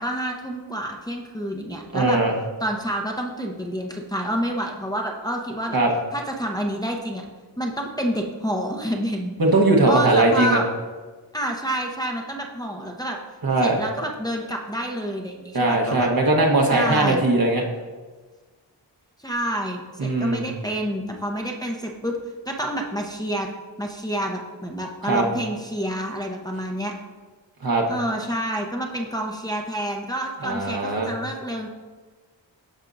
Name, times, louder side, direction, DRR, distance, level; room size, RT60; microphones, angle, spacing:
voice 1, 0.0-2.2 2.6-5.8 6.1-7.2 7.6-9.3 9.9-10.6 11.3-13.2 13.6-16.1 16.7-17.2 19.2-22.2 22.4-23.5 23.8-26.9 27.9-31.7, equal, 10° left, 0 dB, 0.9 m, -28 dB
voice 2, 1.9-2.3 5.7-5.9 9.4-10.6 13.4-13.8 15.5-17.6 20.0-20.4 25.1-25.2 27.6-27.8 30.4-31.1, right 2 dB, 50° right, -1 dB, 1.3 m, -19 dB
12.0 x 4.5 x 2.6 m, 1.3 s
cardioid pair, 45°, 45 cm